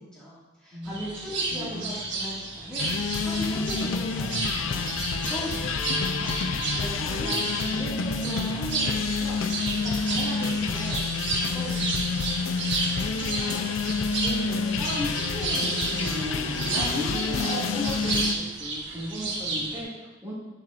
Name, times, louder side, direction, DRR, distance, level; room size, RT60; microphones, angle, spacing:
voice 1, 0.0-4.8 5.1-6.3 6.7-12.4, equal, 5° left, -11 dB, 2.0 m, -39 dB
voice 2, 0.7-1.1 1.5-1.9 13.1-13.7 14.2-20.3, left 1 dB, 15° right, -9 dB, 2.3 m, -35 dB
sound 1, 0.8-19.8, right 3 dB, 60° right, 1.4 m, -32 dB
sound 2, 2.8-18.4, left 4 dB, 85° left, 0.5 m, -28 dB
8.8 x 7.4 x 2.5 m, 1.2 s
head